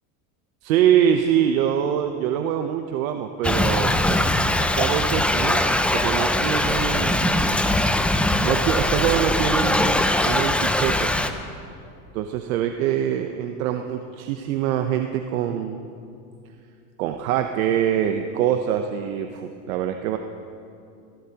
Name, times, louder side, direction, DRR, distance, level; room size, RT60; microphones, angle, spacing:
voice 1, 0.6-4.2 4.7-5.6 5.9-7.3 8.4-11.1 12.1-15.9 17.0-20.2, right 9 dB, 80° right, 6 dB, 0.8 m, -24 dB
Thunder / Rain, 3.4-11.3, left 1 dB, 5° left, 0.5 m, -21 dB
20.5 x 16.0 x 2.9 m, 2.5 s
supercardioid pair, 110°, 40 cm